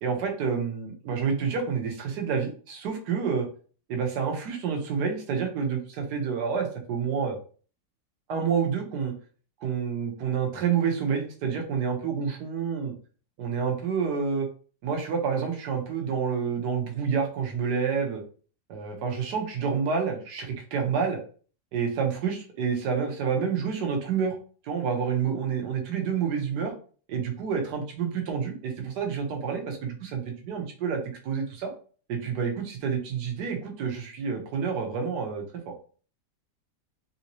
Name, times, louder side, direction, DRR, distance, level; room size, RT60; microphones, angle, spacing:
voice 1, 0.0-3.5 3.9-7.4 8.3-9.1 9.6-12.9 13.4-14.5 14.8-18.2 18.7-21.2 21.7-24.4 24.6-26.7 27.1-31.7 32.1-35.4, right 6 dB, 70° right, 3 dB, 1.4 m, -28 dB
3.6 x 2.7 x 2.9 m, 0.40 s
omnidirectional pair, 1.9 m